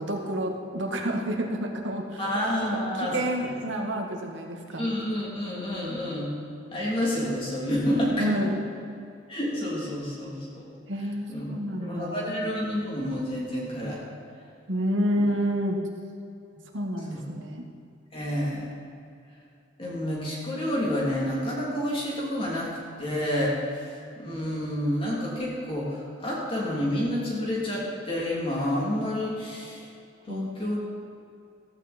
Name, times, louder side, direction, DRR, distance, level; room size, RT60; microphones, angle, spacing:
voice 1, 0.0-2.3 2.7-4.9 8.2-8.6 10.9-12.4 14.7-15.8 16.7-17.6 30.3-30.7, equal, 80° right, 2 dB, 2.0 m, -29 dB
voice 2, 2.2-3.2 4.8-6.3 6.7-8.4 9.3-10.6 11.3-11.5 11.8-14.0 17.1-17.2 18.1-18.7 19.8-22.7 23.0-23.5 24.2-29.8 30.3-30.8, equal, 30° left, -5 dB, 3.3 m, -29 dB
15.0 x 14.5 x 4.5 m, 2.5 s
head